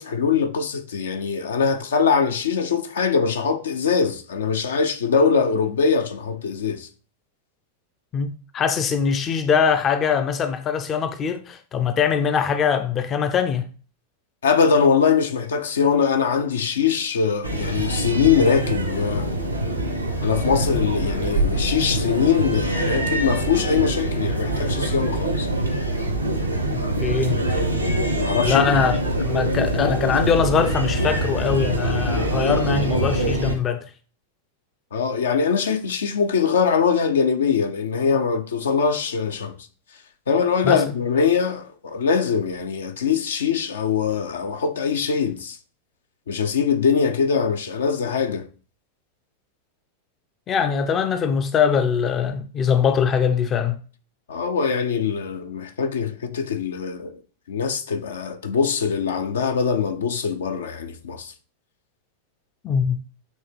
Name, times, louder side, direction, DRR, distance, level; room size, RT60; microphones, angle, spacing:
voice 1, 0.0-6.9 14.4-19.3 20.2-25.5 28.2-28.6 34.9-39.6 40.3-45.6 46.3-48.5 54.3-57.2 57.5-61.3, left 6 dB, 65° left, 0.7 m, -22 dB
voice 2, 8.1-13.6 27.0-27.5 28.4-33.9 40.6-41.0 50.5-53.8 62.6-63.0, left 7 dB, 25° left, 0.6 m, -22 dB
sound 1, 17.4-33.5, right 1 dB, 90° right, 1.1 m, -24 dB
8.1 x 3.5 x 3.4 m
figure-of-eight pair, 90°, 0 cm